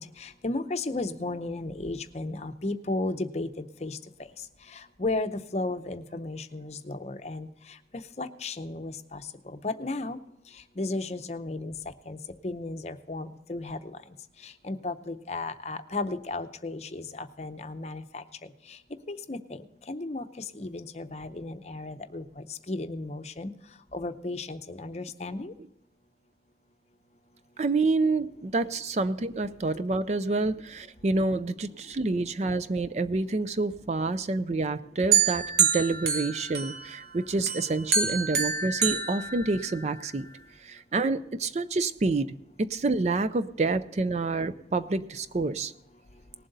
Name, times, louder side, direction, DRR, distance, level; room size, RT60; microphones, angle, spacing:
voice 1, 0.0-4.0 4.7-7.5 8.2-10.2 10.8-11.7 12.1-12.2 12.4-14.0 14.4-18.2 18.7-18.8 19.1-23.5 23.9-25.5, left 2 dB, 35° left, 9 dB, 0.7 m, -34 dB
voice 2, 27.6-40.3 40.6-42.3 42.6-45.7, right 3 dB, 40° right, 13 dB, 0.4 m, -28 dB
sound 1, 35.1-37.1 37.5-40.0, right 6 dB, 65° right, 1.5 m, -27 dB
19.0 x 7.6 x 4.0 m, 0.87 s
head